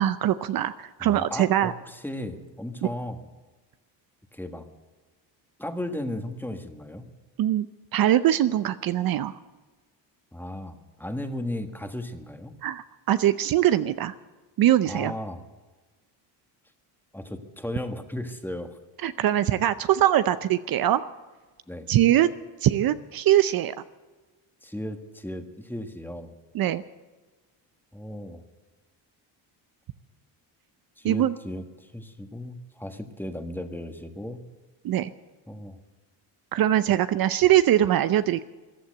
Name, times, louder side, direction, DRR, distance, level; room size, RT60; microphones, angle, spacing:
voice 1, 0.0-1.7 7.4-7.7 7.9-9.4 12.6-14.1 14.6-15.1 19.0-21.0 21.9-22.3 22.6-23.7 26.5-26.8 31.0-31.4 34.8-35.1 36.5-38.4, right 12 dB, 50° right, 13 dB, 0.7 m, -22 dB
voice 2, 1.0-3.3 4.3-4.7 5.6-7.1 10.3-12.5 14.8-15.4 17.1-18.8 21.7-21.9 24.6-26.3 27.9-28.4 31.0-34.4 35.5-35.8, left 1 dB, 5° left, 7 dB, 1.6 m, -35 dB
15.0 x 11.5 x 7.8 m, 1.3 s
cardioid pair, 100°, 45 cm